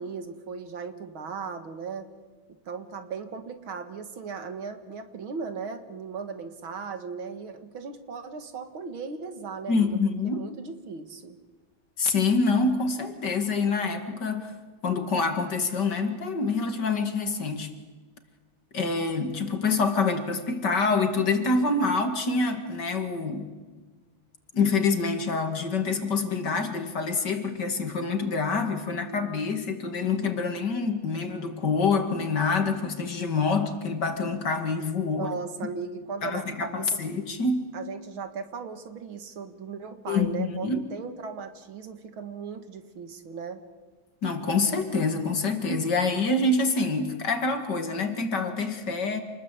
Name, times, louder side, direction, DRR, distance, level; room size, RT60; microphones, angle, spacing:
voice 1, 0.0-2.1 2.7-10.0 10.3-11.4 35.1-37.0 37.7-43.6, right 5 dB, 70° right, 8 dB, 2.6 m, -37 dB
voice 2, 9.7-10.5 12.0-14.5 14.8-17.7 18.7-23.5 24.5-35.3 36.2-37.7 40.1-40.9 44.2-49.2, left 4 dB, 55° left, 7 dB, 2.9 m, -26 dB
28.5 x 20.5 x 8.3 m, 1.3 s
omnidirectional pair, 2.3 m